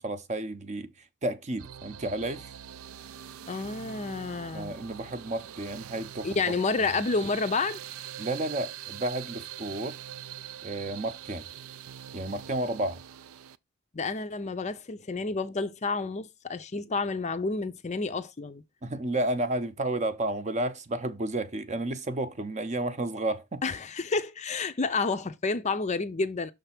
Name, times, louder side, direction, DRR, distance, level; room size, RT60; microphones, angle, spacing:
voice 1, 0.0-2.5 3.5-3.6 4.5-6.4 8.2-10.0 10.6-11.5 12.1-13.0 18.8-23.6, right 1 dB, 30° right, 0.7 m, -32 dB
sound 1, 1.6-13.6, right 10 dB, 65° right, 0.4 m, -43 dB
voice 2, 3.5-4.7 6.2-7.8 13.9-18.6 23.6-26.5, left 3 dB, 30° left, 0.5 m, -30 dB
6.4 x 3.3 x 5.8 m
head